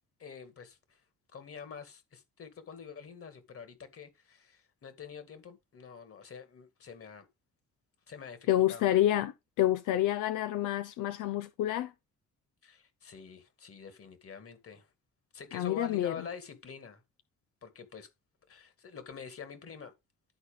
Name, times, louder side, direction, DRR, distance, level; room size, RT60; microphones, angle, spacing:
voice 1, 0.2-1.0 1.3-7.3 8.1-8.8 12.6-14.9 15.3-17.0 17.6-18.1 18.5-19.9, left 6 dB, 50° left, 2.1 m, -46 dB
voice 2, 8.5-11.9 15.5-16.2, left 13 dB, 85° left, 0.6 m, -28 dB
11.5 x 4.2 x 5.1 m
cardioid pair, 90°, 30 cm